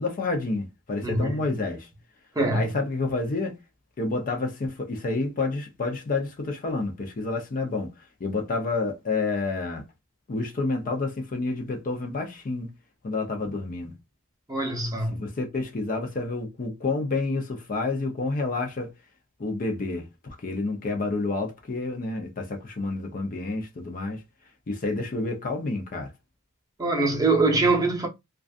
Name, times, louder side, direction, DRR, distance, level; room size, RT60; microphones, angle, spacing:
voice 1, 0.0-1.9 2.5-3.6 4.0-7.9 8.2-9.8 10.3-12.7 13.0-13.9 15.1-18.9 19.4-24.2 24.7-26.1, left 3 dB, 40° left, 0.5 m, -29 dB
voice 2, 1.0-1.3 2.4-2.7 14.5-15.2 26.8-28.1, right 2 dB, 15° right, 0.7 m, -23 dB
2.5 x 2.3 x 2.4 m
head